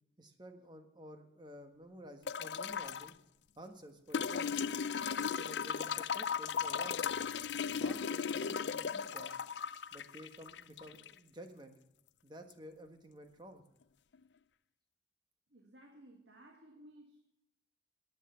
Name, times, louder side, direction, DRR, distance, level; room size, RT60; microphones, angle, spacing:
voice 1, 0.2-3.1 3.6-4.6 5.2-7.0 7.8-9.3 9.9-11.7 12.2-13.6, right 1 dB, 25° right, 6 dB, 1.4 m, -52 dB
sound 1, 2.3-3.1 4.1-11.1 12.5-12.6, left 6 dB, 80° left, 0.5 m, -36 dB
voice 2, 15.5-17.3, right 1 dB, 85° right, 2 dB, 1.8 m, -58 dB
14.0 x 9.3 x 5.7 m, 0.85 s
head